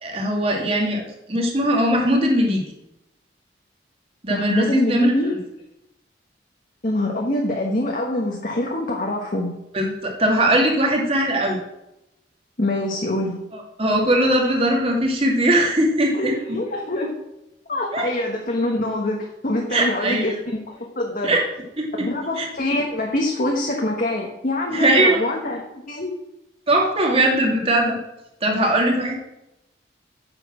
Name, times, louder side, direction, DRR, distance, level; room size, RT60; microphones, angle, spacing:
voice 1, 0.0-2.6 4.2-5.1 9.7-11.6 13.5-16.3 17.9-18.1 19.7-20.3 21.2-21.4 21.8-21.9 22.4-22.5 24.7-25.3 26.7-28.0 28.4-29.2, right 1 dB, 30° right, 0 dB, 2.3 m, -20 dB
voice 2, 4.3-5.3 6.8-9.5 12.6-13.4 16.1-17.2 17.7-20.4 20.7-21.4 22.0-26.1, left 1 dB, 45° left, 0 dB, 1.3 m, -24 dB
8.9 x 6.9 x 6.1 m, 0.89 s
head